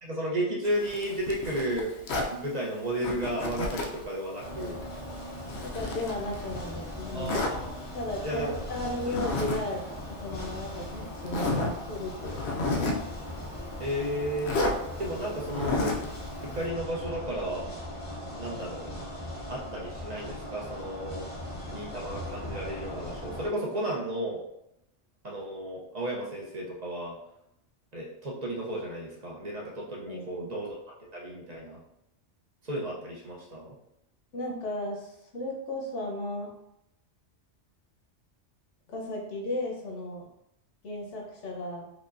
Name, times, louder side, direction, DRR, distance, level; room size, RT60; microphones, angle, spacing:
voice 1, 0.0-4.8 7.1-7.7 8.2-8.5 9.0-9.1 13.8-14.6 15.0-15.9 16.4-17.7 18.3-18.9 19.5-21.3 21.7-24.4 25.2-27.2 27.9-30.8 31.1-31.8 32.6-33.8, right 1 dB, 45° right, -3 dB, 0.7 m, -33 dB
Zipper (clothing), 0.6-2.4 3.0-4.0 4.4-6.7 7.3-7.6 9.0-9.6 9.9-10.0 10.7-10.8 11.3-11.7 12.2-13.1 14.4-14.8 15.5-16.1, left 2 dB, 70° left, 0.8 m, -31 dB
sound 1, 4.4-23.5, left 1 dB, 35° left, 0.6 m, -39 dB
voice 2, 5.6-7.3 7.9-9.8 10.1-12.8 30.1-30.5 34.3-36.5 38.9-40.3 40.8-41.9, left 1 dB, 90° left, -1 dB, 1.2 m, -35 dB
4.8 x 2.2 x 2.4 m, 0.81 s
omnidirectional pair, 1.2 m